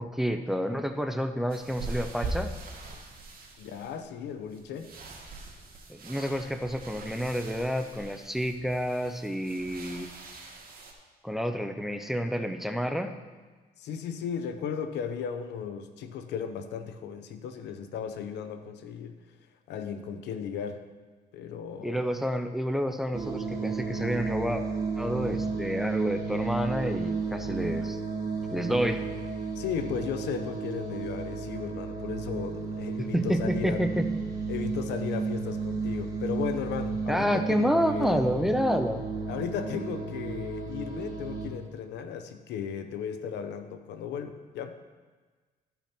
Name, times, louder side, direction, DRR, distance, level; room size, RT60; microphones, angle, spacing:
voice 1, 0.0-2.5 5.9-10.1 11.2-13.2 21.8-24.6 25.0-28.0 28.5-29.0 33.1-34.1 37.1-39.0, equal, ahead, 7 dB, 0.7 m, -29 dB
sound 1, 1.5-10.9, right 3 dB, 60° right, 2.0 m, -42 dB
voice 2, 3.6-4.9 13.8-19.2 19.7-20.8 21.3-22.1 29.6-33.8 34.5-38.5 39.3-44.8, left 7 dB, 85° left, 8 dB, 0.8 m, -35 dB
sound 2, 23.1-41.5, right 4 dB, 20° right, 2.3 m, -33 dB
13.5 x 5.6 x 4.4 m, 1.4 s
cardioid pair, 90°, 17 cm